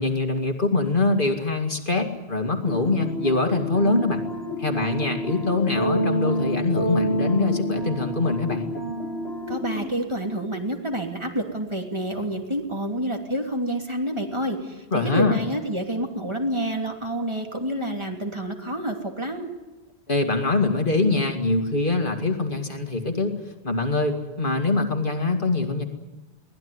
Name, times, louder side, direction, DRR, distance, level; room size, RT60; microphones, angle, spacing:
voice 1, 0.0-4.3 4.6-8.7 14.9-15.4 20.1-23.3 23.6-25.8, left 3 dB, 55° left, 4 dB, 2.4 m, -23 dB
sound 1, 2.7-9.9, equal, 90° left, 2.5 m, -28 dB
voice 2, 9.5-19.5, right 1 dB, 25° right, 2 dB, 3.2 m, -28 dB
23.0 x 19.0 x 9.7 m, 1.1 s
omnidirectional pair, 1.0 m